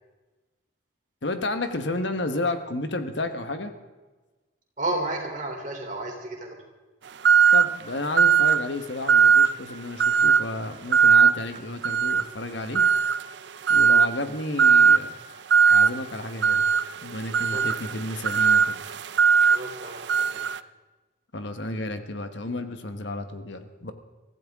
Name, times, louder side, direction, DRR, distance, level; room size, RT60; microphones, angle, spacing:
voice 1, 1.2-3.7 7.5-12.8 13.7-15.1 15.7-16.6 17.0-18.8 21.3-23.9, left 2 dB, 65° left, 8 dB, 1.2 m, -32 dB
voice 2, 4.8-6.6 17.5-17.7 19.5-20.4, right 2 dB, 40° right, 1 dB, 3.4 m, -32 dB
sound 1, 7.2-7.8 8.2-8.6 9.1-9.6 10.0-10.5 10.9-11.4 11.8-12.3 12.8-13.2 13.7-14.1 14.6-15.0 15.5-15.9 16.4-20.6, right 6 dB, 60° right, 0.5 m, -19 dB
24.0 x 15.0 x 3.6 m, 1.2 s
head